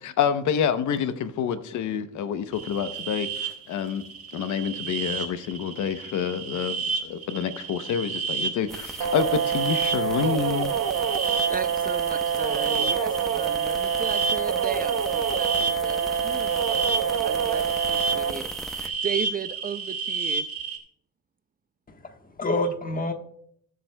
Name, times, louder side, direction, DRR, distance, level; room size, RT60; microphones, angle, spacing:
voice 1, 0.0-4.0 4.3-6.8 7.0-10.8, left 8 dB, 75° left, 0.8 m, -27 dB
sound 1, 2.5-20.8, right 5 dB, 50° right, 2.0 m, -31 dB
sound 2, 8.7-18.9, equal, ahead, 0.9 m, -40 dB
sound 3, 9.0-18.3, right 7 dB, 70° right, 1.0 m, -26 dB
voice 2, 11.5-20.5, right 7 dB, 30° right, 0.4 m, -36 dB
voice 3, 21.9-23.1, left 1 dB, 30° left, 1.3 m, -28 dB
20.0 x 7.5 x 2.2 m
cardioid pair, 90°, 30 cm